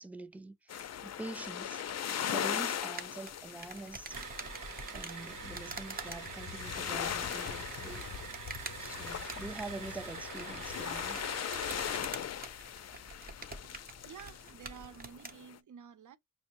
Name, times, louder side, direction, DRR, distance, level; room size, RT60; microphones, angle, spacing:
voice 1, 0.0-4.2 4.9-8.1 8.6-11.2, right 2 dB, 5° right, 0.4 m, -45 dB
sound 1, 0.7-15.6, left 9 dB, 55° left, 0.4 m, -39 dB
sound 2, 1.4-15.4, right 3 dB, 25° right, 0.7 m, -48 dB
sound 3, 4.1-12.1, right 6 dB, 80° right, 1.0 m, -45 dB
voice 2, 14.1-16.2, right 7 dB, 65° right, 0.6 m, -51 dB
6.0 x 2.1 x 2.9 m
wide cardioid pair, 125°, 33 cm